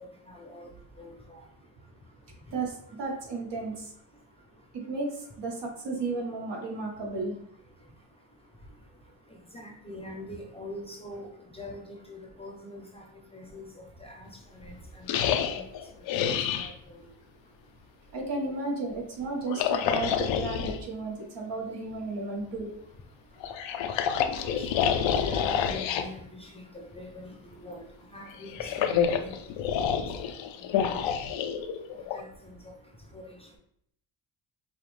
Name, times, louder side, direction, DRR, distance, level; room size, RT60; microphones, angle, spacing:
voice 1, 0.3-0.7 1.0-1.4 9.5-13.0 13.3-13.7 14.0-15.1 15.5-15.6 16.3-17.0 24.5-27.8 28.1-29.3 29.7-30.0 30.2-30.3 30.7-31.0 32.1-32.3 33.1-33.4, left 1 dB, 15° left, 0 dB, 0.8 m, -43 dB
voice 2, 2.5-3.9 4.7-7.4 15.4-15.5 18.1-22.7, right 3 dB, 60° right, -1 dB, 1.5 m, -33 dB
sound 1, 15.1-16.7 19.4-20.8 23.4-26.1 28.3-32.2, left 8 dB, 70° left, 0.6 m, -28 dB
5.3 x 2.3 x 3.2 m, 0.70 s
cardioid pair, 105°, 47 cm